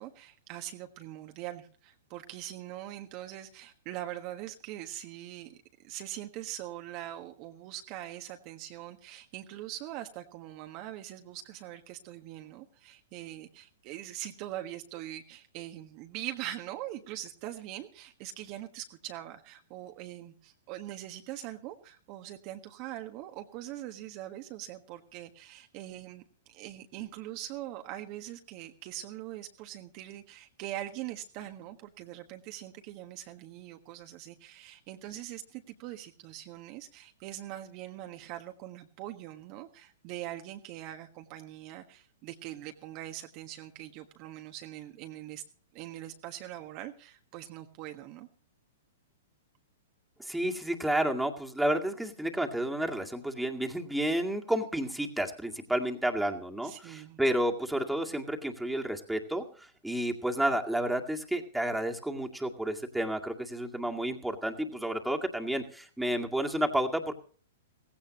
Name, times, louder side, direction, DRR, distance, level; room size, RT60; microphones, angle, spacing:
voice 1, 0.0-5.6 5.8-45.4 45.7-48.3 56.6-57.2, right 13 dB, 40° right, 5 dB, 1.4 m, -42 dB
voice 2, 50.3-59.4 59.8-67.1, right 1 dB, 5° right, 2 dB, 2.2 m, -31 dB
17.5 x 16.0 x 3.1 m, 0.42 s
figure-of-eight pair, 110°, 0 cm